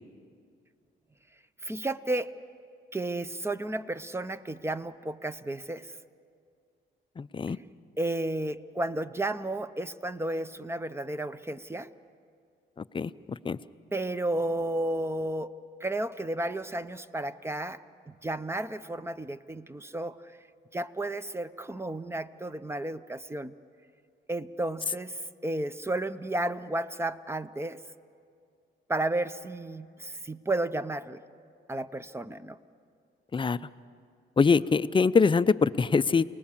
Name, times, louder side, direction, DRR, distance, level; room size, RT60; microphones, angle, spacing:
voice 1, 1.6-2.3 2.9-5.9 8.0-11.9 13.9-15.5 15.8-17.8 18.1-20.2 20.7-23.5 24.3-27.8 28.9-31.2 31.7-32.6, right 1 dB, 15° right, 13 dB, 0.7 m, -32 dB
voice 2, 7.2-7.6 12.9-13.1 13.5-13.6 33.3-33.6 34.4-36.2, left 5 dB, 25° left, 15 dB, 0.5 m, -23 dB
28.0 x 19.0 x 7.3 m, 2.3 s
cardioid pair, 90°, 20 cm